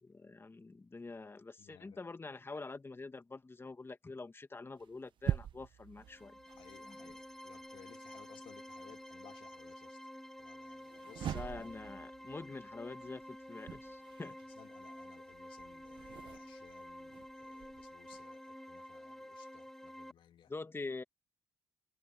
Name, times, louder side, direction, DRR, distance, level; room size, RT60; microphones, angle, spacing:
voice 1, 0.0-6.4 6.8-7.1 11.3-14.4 20.5-21.0, left 3 dB, 25° left, 1.8 m, -46 dB
voice 2, 1.6-2.0 6.6-10.0 10.4-11.4 14.2-20.5, left 10 dB, 70° left, 2.4 m, -60 dB
sound 1, 4.8-9.1 10.7-18.2, right 10 dB, 65° right, 0.9 m, -44 dB
sound 2, 6.0-20.1, equal, 5° left, 1.6 m, -50 dB
supercardioid pair, 70°, 9 cm